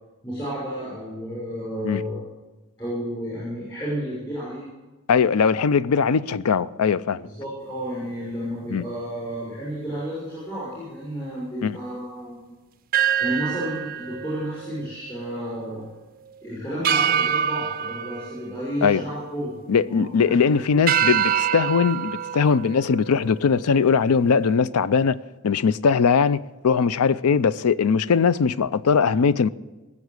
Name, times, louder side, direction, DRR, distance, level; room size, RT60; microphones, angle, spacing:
voice 1, 0.2-2.2 2.8-4.7 7.2-12.4 13.2-15.9 16.4-20.8, equal, 20° left, 6.0 m, -32 dB
voice 2, 5.1-7.3 8.7-8.8 11.6-11.8 18.8-19.0 19.7-25.2 25.4-26.4 26.6-29.5, left 6 dB, 85° left, 0.5 m, -20 dB
sound 1, 12.9-15.4 15.7-15.9 16.8-19.4 19.8-20.3 20.9-23.7, right 9 dB, 40° right, 0.4 m, -26 dB
19.0 x 7.2 x 8.1 m
head